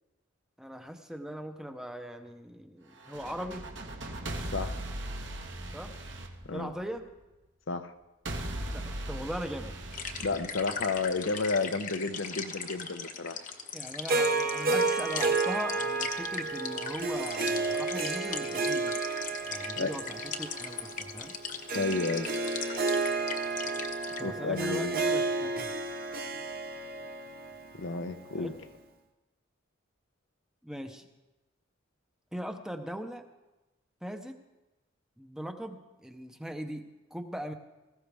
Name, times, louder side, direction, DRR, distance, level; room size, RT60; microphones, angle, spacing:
voice 1, 0.6-3.7 5.7-6.0 6.5-7.0 8.7-9.8 13.7-18.9 19.5-21.3 24.2-25.7 28.4-28.5 30.6-31.1 32.3-33.2 34.0-34.4 35.2-37.5, equal, 5° right, 5 dB, 0.7 m, -40 dB
sound 1, 3.0-7.1 8.3-11.1, right 1 dB, 65° right, 1.4 m, -38 dB
sound 2, 9.9-24.2, left 6 dB, 40° left, 1.0 m, -40 dB
voice 2, 10.2-13.5 19.8-19.9 21.7-22.3 24.2-25.0 27.7-28.6, left 3 dB, 70° left, 8 dB, 0.8 m, -32 dB
Harp, 14.1-28.5, right 3 dB, 45° right, 0.9 m, -31 dB
18.5 x 15.5 x 3.4 m, 1.1 s
head